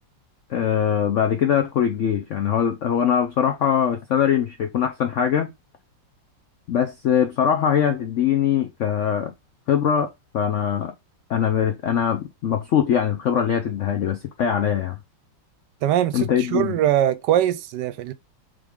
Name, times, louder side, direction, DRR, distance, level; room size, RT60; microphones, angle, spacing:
voice 1, 0.5-5.5 6.7-9.3 9.7-10.9 11.3-15.0 16.1-16.7, left 8 dB, 90° left, 0.6 m, -22 dB
voice 2, 15.8-18.1, right 12 dB, 75° right, 1.1 m, -22 dB
3.7 x 3.5 x 3.5 m
omnidirectional pair, 2.0 m